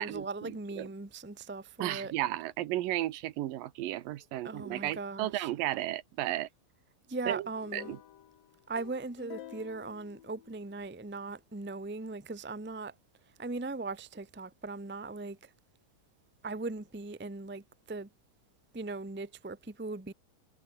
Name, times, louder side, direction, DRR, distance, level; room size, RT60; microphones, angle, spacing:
voice 1, 0.0-2.1 4.4-5.5 7.1-8.0 8.7-12.9 13.4-15.5 16.4-18.1 18.7-20.1, right 3 dB, 10° right, 0.7 m, -39 dB
voice 2, 1.8-6.5 7.3-7.4 7.7-8.0, right 14 dB, 80° right, 2.7 m, -33 dB
sound 1, 7.6-11.0, left 12 dB, 85° left, 3.2 m, -50 dB
omnidirectional pair, 3.9 m